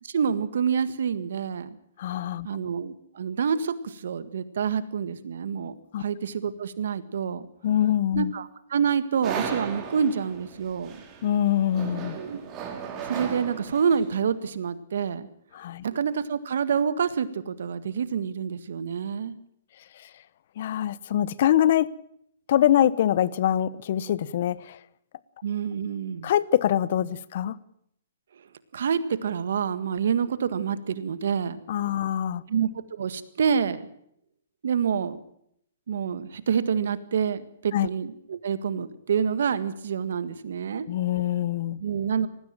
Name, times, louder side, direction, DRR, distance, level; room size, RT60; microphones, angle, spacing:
voice 1, 0.0-1.7 2.4-7.5 8.1-11.0 12.1-12.4 13.0-15.3 15.8-19.4 25.4-26.3 28.7-31.6 32.5-32.7 33.0-33.9 34.6-35.2 35.9-40.9 41.8-42.3, right 7 dB, 70° right, 1.7 m, -27 dB
voice 2, 2.0-2.5 5.9-6.0 7.6-8.3 11.2-12.2 15.5-15.8 20.6-21.9 22.5-24.8 26.2-27.6 31.7-32.4 37.7-37.9 40.9-41.8, left 11 dB, 55° left, 0.9 m, -24 dB
sound 1, 9.2-14.2, right 6 dB, 25° right, 4.0 m, -36 dB
19.5 x 15.5 x 8.9 m
hypercardioid pair, 140°, 0 cm